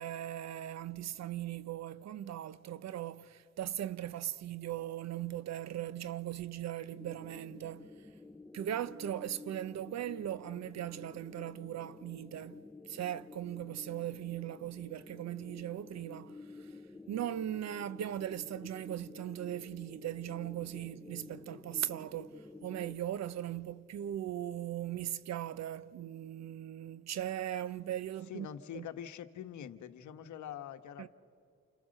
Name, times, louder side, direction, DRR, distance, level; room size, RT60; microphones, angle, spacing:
voice 1, 0.0-8.1 8.5-16.7 17.1-28.5 28.7-28.9 31.0-31.1, right 11 dB, 60° right, 0.8 m, -39 dB
sound 1, 6.9-23.0, left 3 dB, 5° left, 0.8 m, -52 dB
voice 2, 28.3-31.1, left 9 dB, 75° left, 1.3 m, -44 dB
29.0 x 28.5 x 6.6 m
cardioid pair, 90°, 30 cm